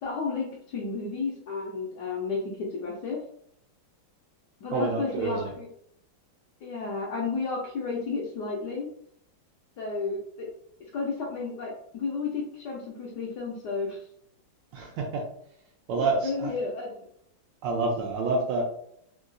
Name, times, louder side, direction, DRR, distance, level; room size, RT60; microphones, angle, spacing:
voice 1, 0.0-3.2 4.6-5.7 6.6-8.9 9.8-10.5 10.9-14.0 16.2-17.1, left 4 dB, 75° left, -3 dB, 1.0 m, -32 dB
voice 2, 4.7-5.5 14.7-15.2 15.9-16.5 17.6-18.6, right 3 dB, 75° right, 1 dB, 1.2 m, -28 dB
3.6 x 2.3 x 2.5 m, 0.69 s
omnidirectional pair, 2.3 m